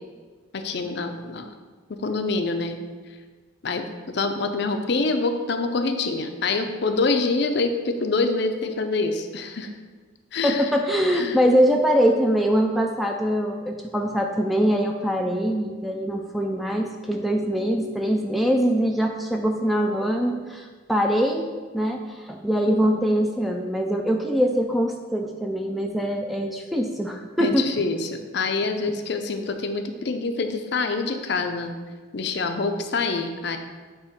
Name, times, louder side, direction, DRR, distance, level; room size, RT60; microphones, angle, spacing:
voice 1, 0.5-1.5 2.0-2.8 3.6-9.7 10.3-10.8 11.1-11.4 22.7-23.0 27.4-31.7 32.1-33.6, left 3 dB, 55° left, 6 dB, 0.5 m, -26 dB
voice 2, 10.4-21.5 21.7-27.7, equal, ahead, 2 dB, 0.3 m, -23 dB
8.2 x 3.0 x 5.0 m, 1.4 s
head